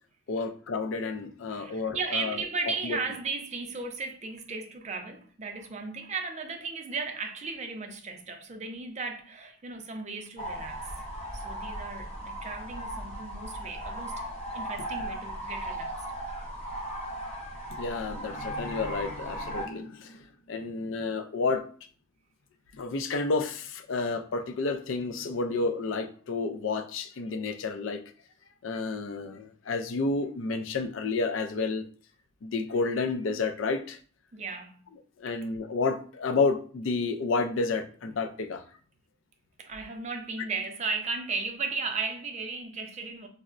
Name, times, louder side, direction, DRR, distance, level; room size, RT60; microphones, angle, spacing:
voice 1, 0.3-2.4 2.8-3.0 17.8-20.2 20.5-21.6 22.8-28.0 28.6-31.9 32.4-34.0 35.2-38.6, left 3 dB, 65° left, 0.4 m, -30 dB
voice 2, 1.5-10.9 11.3-14.2 14.5-16.0 34.3-34.8 39.6-43.3, right 4 dB, 35° right, 0.4 m, -35 dB
sound 1, 10.4-19.7, right 1 dB, 30° left, 0.8 m, -37 dB
5.2 x 2.0 x 2.4 m
head